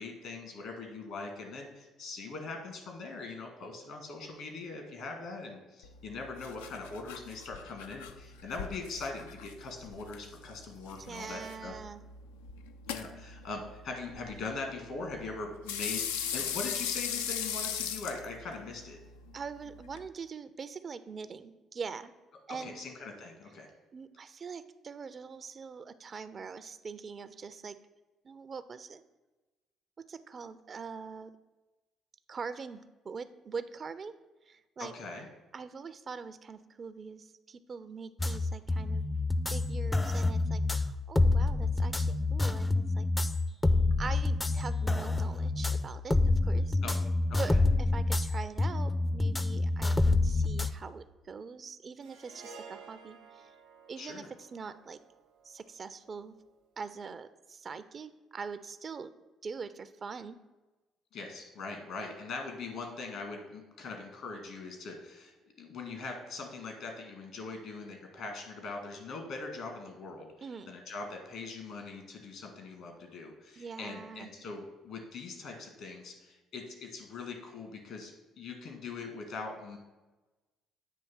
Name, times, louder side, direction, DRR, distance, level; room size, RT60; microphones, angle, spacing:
voice 1, 0.0-11.7 12.9-19.0 22.6-23.7 34.8-35.3 46.8-46.9 47.3-47.6 54.0-54.3 61.1-70.3 70.7-79.8, left 3 dB, 65° left, 3 dB, 1.7 m, -41 dB
sound 1, 5.8-20.1, left 8 dB, 80° left, 0.3 m, -40 dB
voice 2, 11.1-12.0 19.3-22.1 22.5-22.8 23.9-27.8 28.2-29.0 30.1-31.3 32.3-34.1 34.5-34.9 35.5-39.0 39.5-43.1 44.0-46.8 47.4-53.5 53.9-55.0 55.4-56.3 56.8-59.1 59.4-60.4 70.4-70.7 73.6-74.3, right 5 dB, 45° right, 13 dB, 0.4 m, -43 dB
sound 2, 38.2-50.7, left 2 dB, 20° left, 0.4 m, -28 dB
Harp, 52.0-56.4, right 5 dB, 75° right, 0.9 m, -53 dB
8.4 x 3.2 x 6.1 m, 1.1 s
hypercardioid pair, 50°, 0 cm